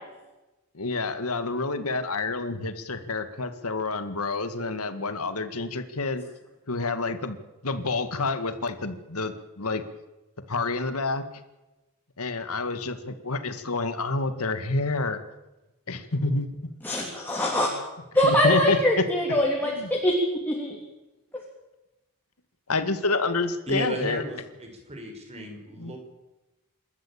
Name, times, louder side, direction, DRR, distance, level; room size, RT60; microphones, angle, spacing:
voice 1, 0.7-6.2 6.7-7.4 7.6-9.8 10.5-11.2 12.2-15.2 15.9-16.5 18.2-19.1 19.6-19.9 22.7-24.2 25.4-25.5 25.8-26.0, left 3 dB, 80° left, 9 dB, 2.0 m, -28 dB
voice 2, 16.8-17.7 18.1-20.1 20.5-20.8, left 1 dB, 10° left, -2 dB, 3.3 m, -23 dB
voice 3, 23.7-26.0, right 1 dB, 30° right, 3 dB, 5.5 m, -34 dB
27.5 x 13.0 x 8.8 m, 1.0 s
head